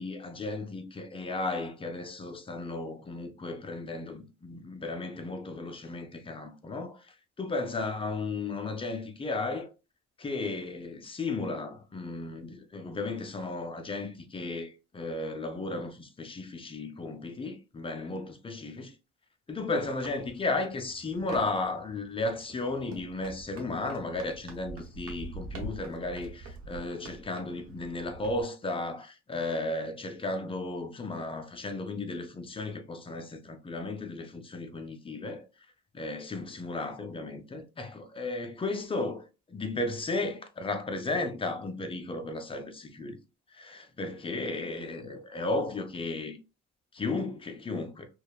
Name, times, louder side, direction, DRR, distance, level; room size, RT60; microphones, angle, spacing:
voice 1, 0.0-9.7 10.2-18.9 19.5-35.5 35.9-43.2 43.5-46.4 46.9-48.1, left 2 dB, 20° left, 0.4 m, -34 dB
sound 1, 19.6-28.4, right 2 dB, 50° right, 0.9 m, -46 dB
2.7 x 2.2 x 2.3 m
cardioid pair, 90°, 30 cm